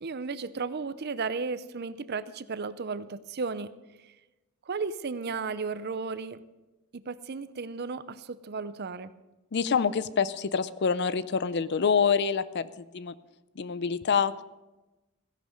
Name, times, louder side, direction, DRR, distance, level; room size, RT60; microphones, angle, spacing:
voice 1, 0.0-3.7 4.0-4.1 4.7-6.4 6.9-9.1, right 4 dB, 45° right, 15 dB, 0.5 m, -34 dB
voice 2, 9.5-13.1 13.6-14.3, left 6 dB, 50° left, 16 dB, 0.5 m, -26 dB
15.5 x 11.0 x 5.1 m, 1.1 s
head